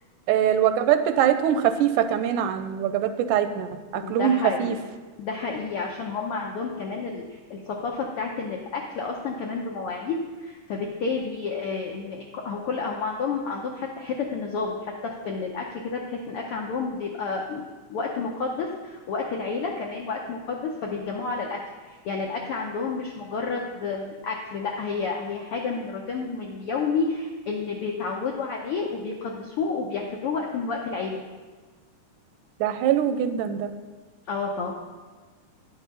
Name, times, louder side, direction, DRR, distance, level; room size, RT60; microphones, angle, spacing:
voice 1, 0.3-4.8 32.6-33.7, right 9 dB, 85° right, 9 dB, 2.1 m, -23 dB
voice 2, 3.9-4.8 5.2-21.6 21.9-31.2 34.3-34.7, left 4 dB, 80° left, -1 dB, 1.2 m, -30 dB
10.5 x 6.0 x 5.4 m, 1.4 s
omnidirectional pair, 3.6 m